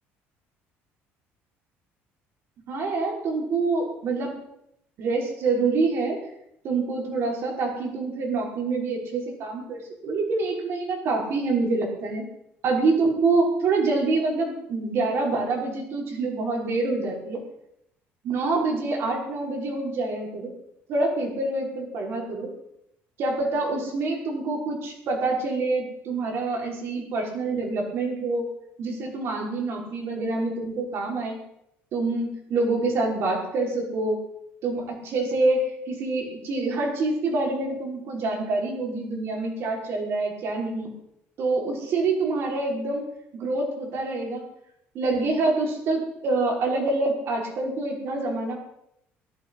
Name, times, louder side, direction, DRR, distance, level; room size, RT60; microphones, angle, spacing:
voice 1, 2.7-4.3 5.0-6.2 6.6-12.3 12.6-17.4 18.2-20.5 20.9-22.5 23.2-28.5 28.8-31.4 31.9-34.2 34.6-40.9 41.4-43.1 43.3-44.4 44.9-48.6, right 3 dB, 55° right, 0 dB, 5.7 m, -26 dB
21.5 x 11.5 x 5.8 m, 0.78 s
cardioid pair, 130°, 5 cm